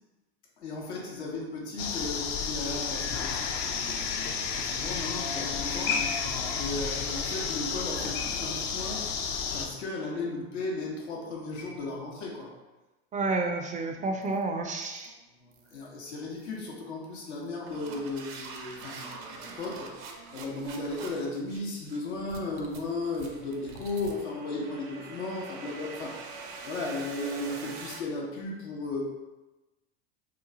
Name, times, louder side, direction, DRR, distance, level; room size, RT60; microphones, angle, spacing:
voice 1, 0.6-9.1 9.5-12.5 15.4-29.0, left 2 dB, 90° left, -2 dB, 0.9 m, -36 dB
sound 1, 1.8-9.7, left 6 dB, 60° left, 0.5 m, -31 dB
voice 2, 13.1-15.1, right 3 dB, 25° right, 4 dB, 0.4 m, -30 dB
sound 2, 14.2-14.4 14.8-15.1 15.5-15.9 16.4-16.6 17.3-28.0, right 4 dB, 75° right, 0.6 m, -44 dB
3.0 x 2.3 x 3.7 m, 1.1 s
hypercardioid pair, 90°, 32 cm